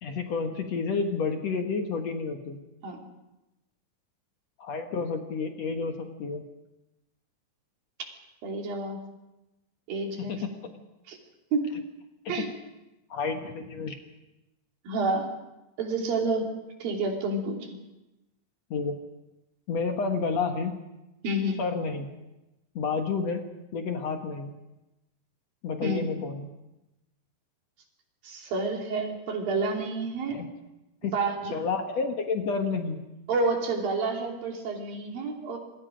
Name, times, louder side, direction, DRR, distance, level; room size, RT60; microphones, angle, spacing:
voice 1, 0.0-2.6 4.6-6.4 10.2-10.7 12.3-12.5 13.1-14.0 18.7-19.0 19.7-20.8 21.6-22.1 22.8-23.4 23.7-24.5 25.6-26.5 30.3-30.5 31.0-31.2 31.5-33.0, left 4 dB, 55° left, 4 dB, 2.3 m, -30 dB
voice 2, 8.4-9.0 9.9-10.4 11.1-11.2 11.5-11.7 12.3-12.5 14.8-15.3 15.8-16.5 16.8-17.7 21.2-21.6 25.8-26.0 28.2-30.4 31.0-31.5 33.3-35.6, right 3 dB, 80° right, 1 dB, 4.8 m, -29 dB
27.0 x 22.5 x 5.2 m, 0.97 s
omnidirectional pair, 4.1 m